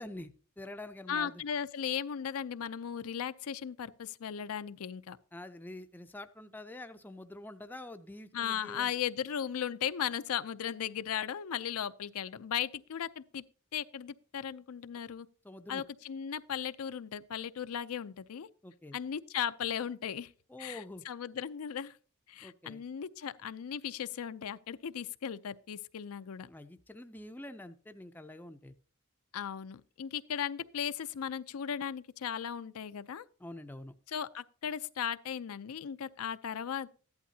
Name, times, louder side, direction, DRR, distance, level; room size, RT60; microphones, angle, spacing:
voice 1, 0.0-1.4 5.3-8.9 15.4-15.8 18.6-19.0 20.5-21.0 22.4-22.8 26.5-28.7 33.4-33.9, left 1 dB, 10° left, 0.4 m, -46 dB
voice 2, 1.1-5.2 8.3-13.4 13.7-15.3 15.7-18.5 18.9-20.3 20.6-22.0 22.3-26.5 29.3-33.2 34.1-36.9, left 8 dB, 75° left, 0.4 m, -37 dB
14.5 x 11.5 x 2.7 m
head